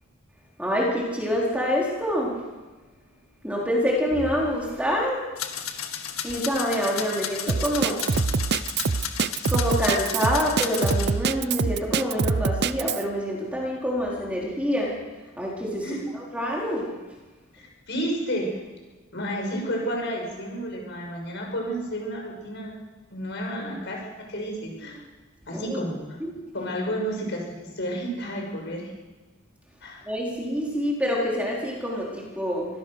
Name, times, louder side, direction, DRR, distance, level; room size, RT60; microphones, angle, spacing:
voice 1, 0.6-2.3 3.4-5.2 5.7-5.8 6.2-8.0 9.5-15.0 15.4-16.9 25.5-25.8 26.2-26.4 30.0-32.7, equal, 5° right, -3 dB, 4.2 m, -26 dB
sound 1, 5.4-11.1, left 8 dB, 85° left, 2.0 m, -34 dB
Drum kit, 7.5-13.0, right 4 dB, 50° right, 0.6 m, -24 dB
voice 2, 17.5-18.5 19.1-22.7 23.1-24.0 24.3-25.0 25.5-26.0 26.5-27.4 27.7-28.9 29.8-30.1, equal, 55° left, 0 dB, 6.7 m, -31 dB
25.5 x 17.0 x 6.6 m, 1.2 s
head